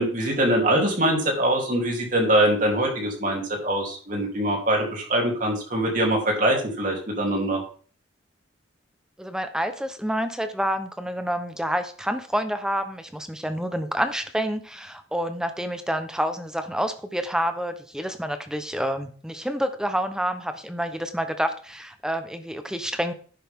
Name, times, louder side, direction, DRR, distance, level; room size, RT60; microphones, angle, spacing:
voice 1, 0.0-7.6, right 1 dB, 45° right, 0 dB, 3.3 m, -23 dB
voice 2, 9.2-23.1, equal, 5° right, 8 dB, 0.8 m, -28 dB
10.5 x 8.2 x 3.6 m, 0.42 s
head